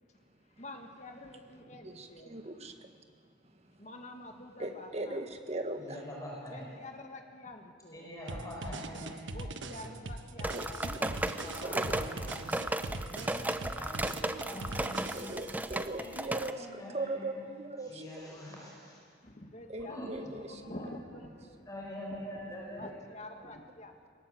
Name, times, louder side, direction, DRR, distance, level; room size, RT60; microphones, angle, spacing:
voice 1, 0.6-2.3 3.8-5.2 6.5-8.1 9.0-11.8 13.1-15.1 19.2-20.0 20.5-21.7 22.8-24.1, left 1 dB, 40° left, 4 dB, 2.0 m, -48 dB
voice 2, 1.8-3.0 3.4-3.9 4.5-6.0 9.7-9.8 10.5-12.0 14.7-18.0 19.7-20.6, right 2 dB, 35° right, 6 dB, 1.5 m, -40 dB
voice 3, 5.8-6.8 7.9-9.5 11.1-13.2 13.8-15.3 15.9-17.4 17.8-19.0 19.9-20.1 20.5-21.0 21.7-23.0, equal, 20° left, -3 dB, 5.0 m, -45 dB
sound 1, 8.3-15.6, right 2 dB, 85° right, 1.2 m, -41 dB
sound 2, 10.4-16.5, right 1 dB, 10° right, 0.6 m, -35 dB
21.0 x 19.0 x 7.9 m, 2.1 s
head